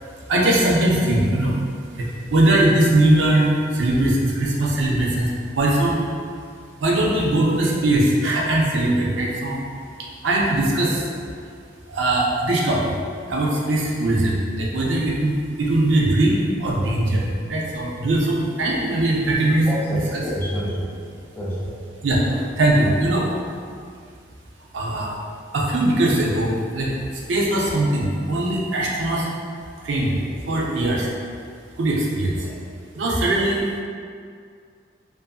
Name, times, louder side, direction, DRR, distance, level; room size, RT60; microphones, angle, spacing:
voice 1, 0.3-1.6 1.9-6.0 6.8-9.6 10.2-11.1 11.9-12.9 13.3-20.2 22.0-23.3 24.7-25.1 25.5-29.3 29.8-30.2 30.5-31.1 31.8-32.5 32.9-33.7, right 1 dB, 75° right, -3 dB, 0.5 m, -20 dB
voice 2, 19.7-20.9 21.4-21.7 30.2-30.3 32.4-32.6, equal, 10° left, -7 dB, 0.4 m, -28 dB
2.6 x 2.5 x 2.3 m, 2.2 s
head